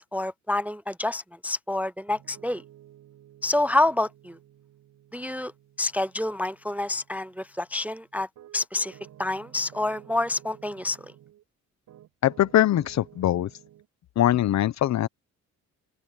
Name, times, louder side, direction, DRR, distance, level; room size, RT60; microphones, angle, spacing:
voice 1, 0.0-2.6 3.4-4.4 5.1-5.5 5.8-8.3 8.5-8.9 9.2-11.0, left 2 dB, 5° right, 0.4 m, -28 dB
Piano, 2.1-11.4 11.9-13.9, right 12 dB, 75° right, 6.3 m, -53 dB
voice 2, 12.2-13.5 14.2-15.1, left 12 dB, 65° left, 0.9 m, -22 dB
open air
cardioid pair, 90°, 30 cm